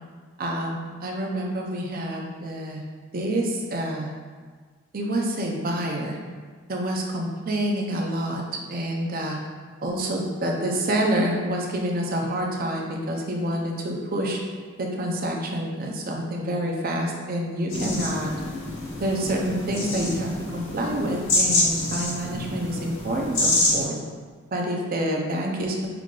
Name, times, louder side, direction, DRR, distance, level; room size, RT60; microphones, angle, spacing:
voice 1, 0.4-2.8 3.1-4.1 4.9-6.2 6.7-9.4 9.8-14.4 14.8-18.3 19.0-24.0 24.5-25.9, right 1 dB, 45° right, 0 dB, 0.6 m, -27 dB
sound 1, 17.7-23.8, left 2 dB, 70° left, 1.3 m, -26 dB
5.8 x 3.7 x 2.4 m, 1.5 s
head